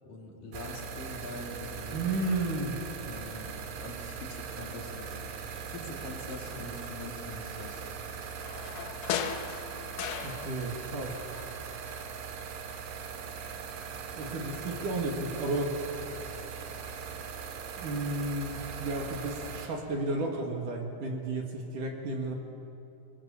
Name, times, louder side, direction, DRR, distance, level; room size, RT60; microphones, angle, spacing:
voice 1, 0.0-2.1 3.0-5.1 5.7-7.8, left 2 dB, 50° left, -1 dB, 4.4 m, -43 dB
sound 1, 0.5-19.7, right 6 dB, 85° right, 4.4 m, -40 dB
voice 2, 1.9-2.8 10.2-11.2 14.2-15.8 17.8-22.3, right 2 dB, 50° right, 2 dB, 3.3 m, -33 dB
sound 2, 8.4-10.9 11.1-12.2 12.5-12.6, left 9 dB, 90° left, 3.7 m, -37 dB
30.0 x 21.0 x 7.3 m, 3.0 s
omnidirectional pair, 5.4 m